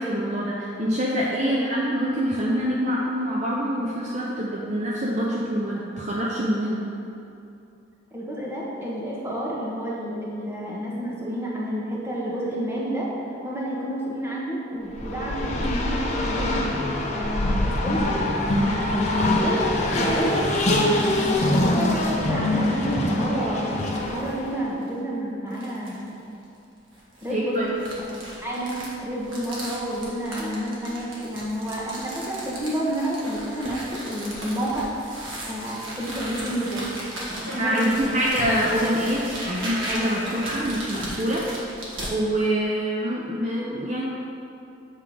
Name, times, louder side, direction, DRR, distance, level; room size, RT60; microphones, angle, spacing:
voice 1, 0.0-6.8 27.3-27.7 37.6-41.6 42.1-44.0, equal, 35° right, -5 dB, 0.6 m, -25 dB
voice 2, 8.1-16.7 17.1-18.2 18.7-20.4 20.7-23.7 24.1-26.1 27.2-27.7 28.4-35.1 35.4-36.8 37.4-38.3, equal, 15° right, -6 dB, 1.1 m, -29 dB
Race car auto racing, 14.9-24.6, left 1 dB, 35° left, 0.7 m, -24 dB
sound 1, 23.8-24.4 24.8-24.9 25.5-26.1 26.9-42.1, right 1 dB, 90° right, 1.4 m, -37 dB
sound 2, 37.2-40.5, equal, 55° right, 1.5 m, -37 dB
7.7 x 3.7 x 4.9 m, 2.7 s
head